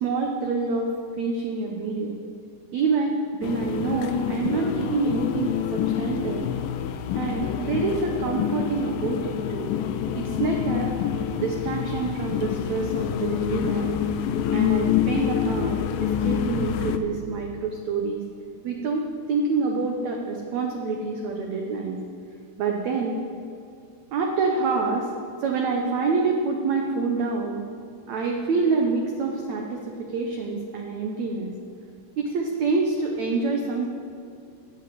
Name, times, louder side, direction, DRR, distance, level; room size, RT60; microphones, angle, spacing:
voice 1, 0.0-2.2 2.7-6.5 7.2-9.7 10.2-10.9 11.3-14.0 14.5-18.2 18.6-19.0 19.3-22.0 22.6-23.2 24.1-25.1 25.4-27.7 28.1-31.5 32.2-33.9, right 4 dB, 90° right, 1 dB, 1.5 m, -27 dB
sound 1, 3.4-17.0, left 9 dB, 90° left, 2.0 m, -27 dB
14.5 x 6.0 x 9.3 m, 2.5 s
omnidirectional pair, 4.6 m